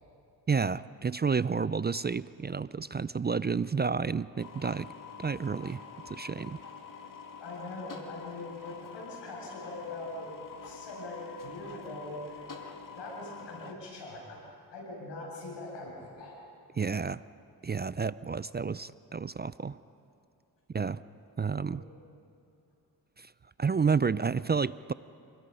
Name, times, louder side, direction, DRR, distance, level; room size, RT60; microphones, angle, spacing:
voice 1, 0.5-4.9 5.2-5.8 6.1-6.6 16.8-17.2 17.6-19.8 20.7-21.0 21.4-21.8 23.2-23.3 23.6-24.9, right 5 dB, 25° right, 17 dB, 0.4 m, -30 dB
sound 1, 4.4-13.7, left 5 dB, 50° left, 2.5 m, -47 dB
voice 2, 7.4-10.3 10.6-12.7 12.9-14.4 14.7-16.4 21.7-21.8, left 2 dB, 85° left, -2 dB, 7.6 m, -42 dB
27.5 x 21.0 x 5.6 m, 2.5 s
cardioid pair, 55°, 42 cm